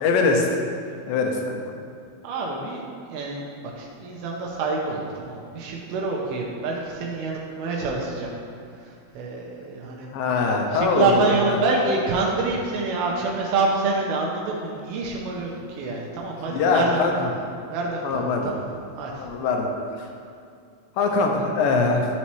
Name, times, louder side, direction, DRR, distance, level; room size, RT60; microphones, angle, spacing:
voice 1, 0.0-0.5 1.0-1.6 10.1-11.6 16.5-17.3 18.0-18.5 19.2-20.1 21.0-22.1, left 4 dB, 80° left, 2 dB, 2.2 m, -22 dB
voice 2, 2.2-2.8 3.1-8.3 8.7-10.1 10.7-17.0 17.7-18.6 19.0-19.3, right 3 dB, 85° right, -2 dB, 2.7 m, -26 dB
11.5 x 4.1 x 3.1 m, 2.3 s
omnidirectional pair, 4.4 m